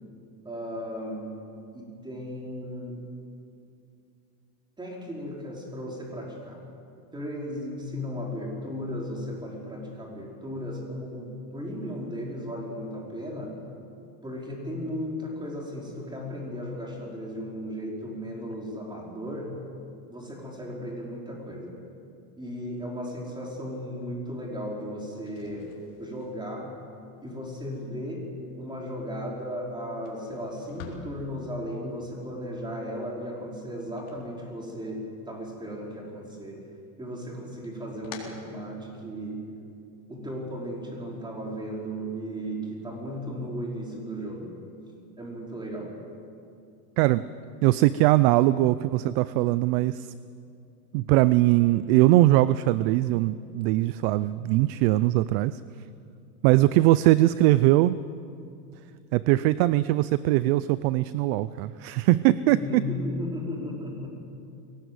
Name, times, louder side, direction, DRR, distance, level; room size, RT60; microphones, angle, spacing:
voice 1, 0.4-1.3 1.7-2.9 4.8-6.6 7.1-13.6 14.2-19.5 20.1-21.7 22.4-25.7 26.0-26.7 27.2-28.2 28.6-36.6 37.0-39.4 40.1-44.5 45.2-45.9 62.5-64.1, equal, 10° right, -2 dB, 4.8 m, -35 dB
sound 1, 25.2-35.1 35.4-36.3 36.7-39.3, left 6 dB, 60° left, 4.1 m, -51 dB
voice 2, 47.6-50.1 50.9-55.6 56.4-58.0 59.1-62.8, right 16 dB, 40° right, 16 dB, 0.5 m, -21 dB
23.0 x 18.5 x 8.0 m, 2.5 s
supercardioid pair, 135°, 48 cm